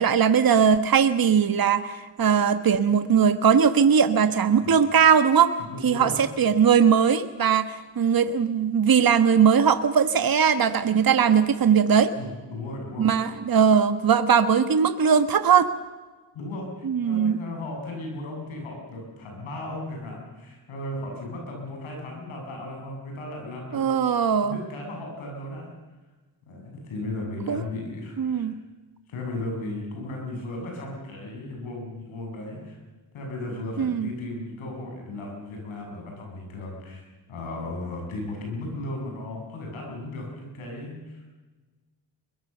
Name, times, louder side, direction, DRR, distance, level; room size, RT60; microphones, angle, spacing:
voice 1, 0.0-5.5 5.8-12.1 13.0-15.7 16.8-17.4 23.7-24.6 27.5-27.6 28.2-28.6 33.8-34.1, right 7 dB, 45° right, 10 dB, 1.4 m, -20 dB
voice 2, 5.6-6.2 12.2-13.3 16.3-23.8 24.4-25.7 26.5-28.5 29.1-32.8 33.1-41.4, left 2 dB, 90° left, 1 dB, 7.2 m, -36 dB
23.5 x 21.5 x 6.9 m, 1.3 s
supercardioid pair, 55°, 47 cm